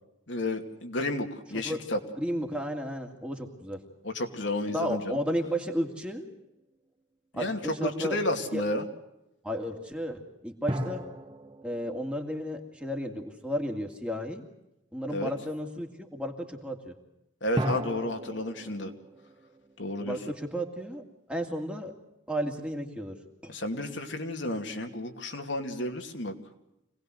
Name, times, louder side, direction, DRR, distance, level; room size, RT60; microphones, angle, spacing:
voice 1, 0.3-2.0 4.0-5.2 7.3-8.9 15.1-15.3 17.4-18.9 19.8-20.2 23.5-26.3, left 1 dB, 65° left, 5 dB, 2.5 m, -32 dB
voice 2, 2.2-3.8 4.7-6.2 7.3-8.2 8.5-8.6 9.4-11.0 11.6-14.4 14.9-16.9 20.0-21.0 21.3-21.9 22.3-23.6, equal, 5° right, 3 dB, 2.4 m, -33 dB
sound 1, 6.3-7.0 10.7-13.5 17.6-20.8, equal, 25° right, 1.9 m, -37 dB
26.5 x 19.0 x 7.7 m, 0.92 s
head